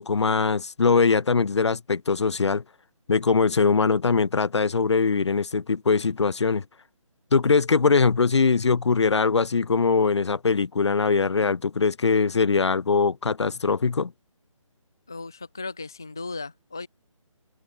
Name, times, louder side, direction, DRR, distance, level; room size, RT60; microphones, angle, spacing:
voice 1, 0.0-2.6 3.1-6.6 7.3-14.1, left 4 dB, 55° left, 1.1 m, -22 dB
voice 2, 15.1-16.9, left 3 dB, 5° left, 0.4 m, -36 dB
hypercardioid pair, 175°, 17 cm